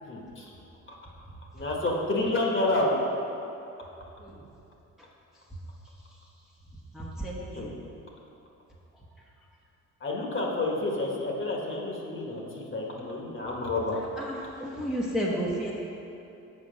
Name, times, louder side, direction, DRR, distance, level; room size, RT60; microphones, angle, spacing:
voice 1, 0.0-0.5 1.5-2.9 7.5-7.7 10.0-14.0, left 2 dB, 40° left, -2 dB, 1.5 m, -29 dB
voice 2, 6.9-7.7 13.9-15.7, equal, ahead, -5 dB, 1.0 m, -32 dB
7.6 x 5.0 x 5.1 m, 2.8 s
cardioid pair, 90°, 30 cm